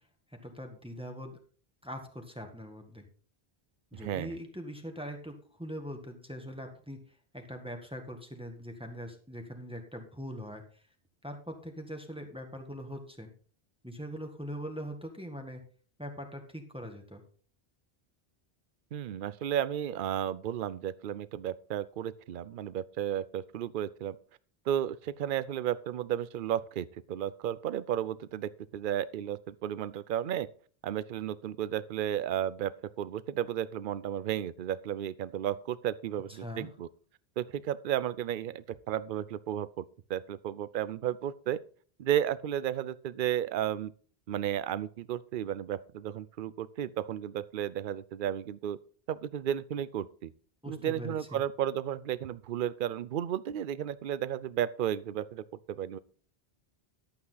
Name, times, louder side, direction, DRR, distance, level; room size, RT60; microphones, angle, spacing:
voice 1, 0.4-1.4 1.8-3.0 3.9-7.0 7.3-10.6 11.2-13.3 13.8-15.6 16.0-17.2 36.4-36.7 50.6-51.4, equal, 5° right, 3 dB, 1.6 m, -42 dB
voice 2, 3.9-4.4 18.9-24.2 24.7-30.5 30.8-36.9 37.4-41.6 42.0-43.9 44.3-48.8 49.1-50.3 50.7-56.0, right 10 dB, 60° right, 16 dB, 0.7 m, -33 dB
12.0 x 8.5 x 4.0 m, 0.43 s
omnidirectional pair, 1.0 m